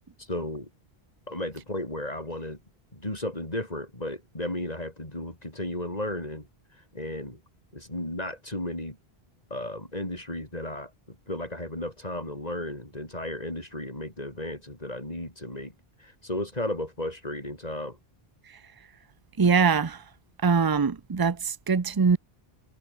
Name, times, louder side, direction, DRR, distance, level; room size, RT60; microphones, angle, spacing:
voice 1, 0.2-0.7 1.3-2.6 2.9-6.5 6.9-7.4 7.7-9.0 9.5-10.9 11.3-15.7 16.0-18.0, left 1 dB, 40° left, 6.7 m, -34 dB
voice 2, 19.4-20.0 20.4-22.2, right 5 dB, 25° right, 0.6 m, -22 dB
omnidirectional pair, 1.0 m